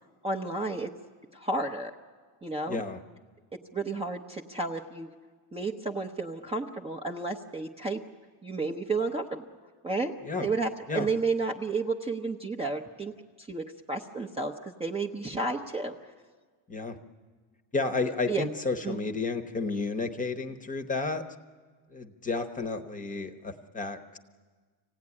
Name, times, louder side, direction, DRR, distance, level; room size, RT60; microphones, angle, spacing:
voice 1, 0.2-0.9 1.3-1.9 2.4-2.8 3.5-5.1 5.5-8.0 8.4-9.4 9.8-10.1 10.4-13.1 13.4-15.9 18.3-18.5 18.8-19.0, right 3 dB, 10° right, 1 dB, 0.7 m, -32 dB
voice 2, 2.7-3.0 10.2-10.5 10.9-11.1 16.7-17.0 17.7-21.2 21.9-24.2, left 3 dB, 15° left, 9 dB, 0.9 m, -32 dB
25.5 x 17.0 x 9.7 m, 1.5 s
cardioid pair, 160°, 50 cm